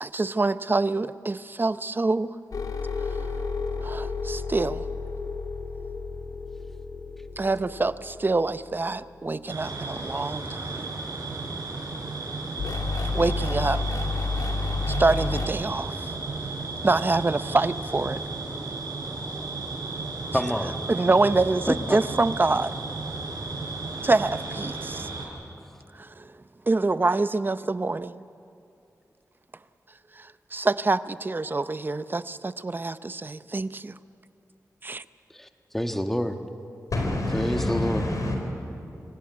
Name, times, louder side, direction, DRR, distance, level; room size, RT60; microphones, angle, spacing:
voice 1, 0.0-2.3 3.8-4.8 7.4-10.8 13.1-13.8 15.0-15.9 16.8-18.2 20.9-22.7 24.0-25.1 26.7-28.2 30.5-33.9 34.8-35.0, right 3 dB, 35° right, 14 dB, 0.6 m, -25 dB
sound 1, 2.5-8.9 12.6-15.5, left 3 dB, 85° left, 2.0 m, -31 dB
sound 2, 9.5-25.3, right 3 dB, 75° right, 5.3 m, -34 dB
voice 2, 20.3-20.8 21.7-22.0 35.7-36.4 37.3-38.1, equal, 5° left, 6 dB, 1.4 m, -26 dB
voice 3, 36.9-38.4, left 1 dB, 70° left, 2 dB, 4.4 m, -27 dB
24.5 x 16.0 x 9.5 m, 2.7 s
wide cardioid pair, 70°, 6 cm